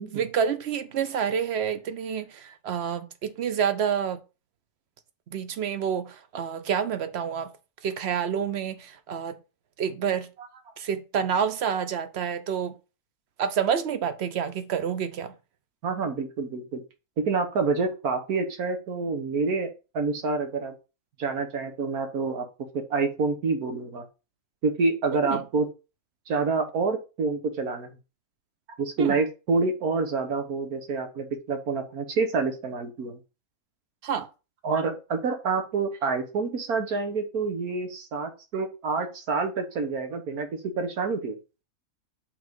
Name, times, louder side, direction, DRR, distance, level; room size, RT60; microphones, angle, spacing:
voice 1, 0.1-4.2 5.3-7.5 7.8-9.4 9.8-10.3 10.8-12.8 13.4-15.3 25.1-25.4 29.0-29.2 34.0-34.3, right 7 dB, 55° right, 0.9 m, -28 dB
voice 2, 15.8-16.8 17.2-19.7 19.9-20.7 21.2-22.5 22.7-24.1 24.6-25.7 26.3-27.9 28.8-33.2 34.6-41.4, right 4 dB, 90° right, 1.7 m, -27 dB
6.0 x 3.7 x 5.2 m
omnidirectional pair, 1.5 m